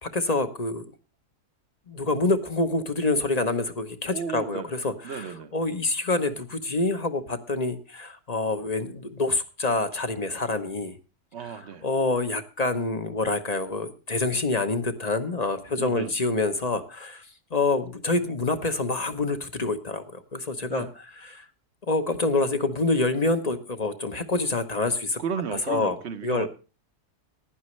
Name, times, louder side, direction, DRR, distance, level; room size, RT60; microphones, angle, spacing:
voice 1, 0.0-0.8 1.9-11.0 11.4-17.2 17.5-20.0 20.3-20.9 21.3-21.4 21.9-25.2 25.7-26.0 26.2-26.5, left 2 dB, 30° left, 0.9 m, -26 dB
voice 2, 4.1-4.7 5.0-5.5 11.3-11.9 15.8-16.1 20.7-20.9 25.2-26.5, right 7 dB, 50° right, 1.1 m, -34 dB
16.0 x 11.0 x 3.1 m
omnidirectional pair, 1.6 m